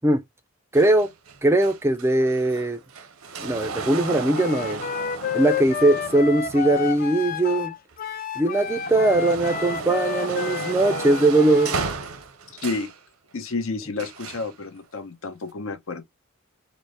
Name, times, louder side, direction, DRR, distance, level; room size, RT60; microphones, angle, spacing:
voice 1, 0.7-1.1 1.4-2.8 3.4-4.8 5.3-7.7 8.4-11.8, right 2 dB, 10° right, 0.4 m, -20 dB
sound 1, 0.7-7.9 8.4-13.0 14.0-14.5 15.4-15.5, right 4 dB, 85° right, 0.7 m, -35 dB
Wind instrument woodwind instrument, 4.3-11.9, left 7 dB, 40° left, 0.5 m, -30 dB
voice 2, 12.5-12.9 13.3-16.0, left 3 dB, 70° left, 0.8 m, -30 dB
4.2 x 2.0 x 3.2 m
head